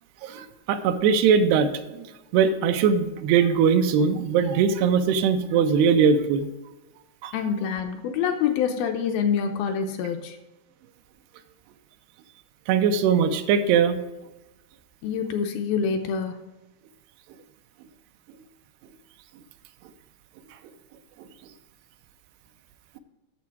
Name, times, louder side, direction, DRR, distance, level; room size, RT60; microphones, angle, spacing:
voice 1, 0.2-2.1 2.3-6.5 7.2-7.3 12.7-14.0, right 6 dB, 85° right, 8 dB, 2.7 m, -21 dB
voice 2, 7.3-10.4 15.0-16.4, left 7 dB, 80° left, 5 dB, 2.3 m, -26 dB
8.5 x 7.1 x 4.6 m, 1.1 s
omnidirectional pair, 4.6 m